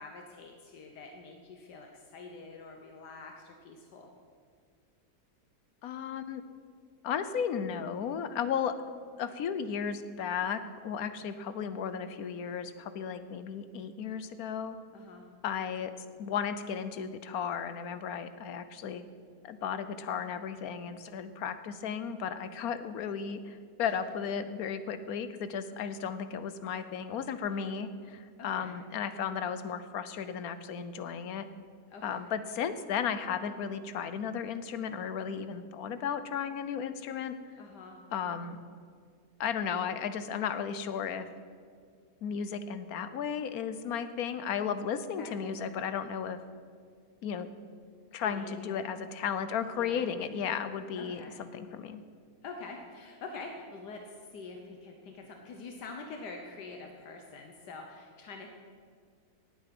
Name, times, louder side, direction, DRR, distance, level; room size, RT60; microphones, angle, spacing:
voice 1, 0.0-4.1 14.9-15.3 23.9-24.0 27.5-27.7 28.4-28.8 31.9-32.2 37.6-38.0 45.2-45.3 48.1-48.9 49.7-50.0 51.0-51.4 52.4-58.5, left 3 dB, 85° left, 3 dB, 1.7 m, -46 dB
voice 2, 5.8-6.4 7.0-8.7 9.2-14.7 15.4-15.9 16.2-19.0 19.4-31.5 32.0-37.4 38.1-38.6 39.4-41.3 42.2-46.4 47.2-47.5 48.1-52.0, left 7 dB, 65° left, 11 dB, 1.2 m, -34 dB
18.0 x 8.4 x 6.0 m, 2.1 s
omnidirectional pair, 1.7 m